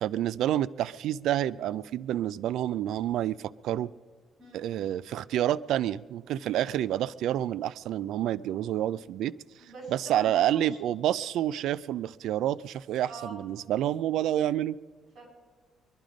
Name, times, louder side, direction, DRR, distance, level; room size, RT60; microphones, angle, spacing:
voice 1, 0.0-3.9 4.5-9.3 9.9-14.8, right 12 dB, 80° right, 16 dB, 0.4 m, -28 dB
voice 2, 9.6-10.8 13.1-13.4 15.1-15.3, right 2 dB, 50° right, 0 dB, 6.3 m, -43 dB
23.0 x 11.5 x 5.2 m, 1.5 s
cardioid pair, 140°, 0 cm